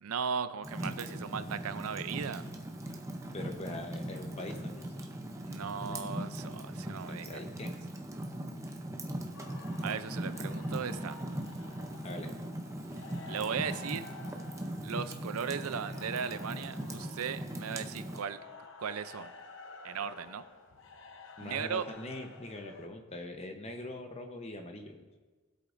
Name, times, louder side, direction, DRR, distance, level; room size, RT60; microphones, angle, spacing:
voice 1, 0.0-2.4 5.4-7.4 9.8-11.2 13.3-14.0 14.8-18.4 18.8-19.3 19.8-20.4 21.4-21.8, right 6 dB, 80° right, 12 dB, 0.5 m, -37 dB
Fire, 0.6-18.2, right 1 dB, 15° right, 0.6 m, -40 dB
voice 2, 3.3-5.1 7.1-7.7 12.0-12.3 21.4-25.0, left 1 dB, 30° left, 4 dB, 0.9 m, -42 dB
sound 1, 9.3-22.9, left 3 dB, 55° left, 0.9 m, -51 dB
19.0 x 8.2 x 2.6 m, 1.4 s
head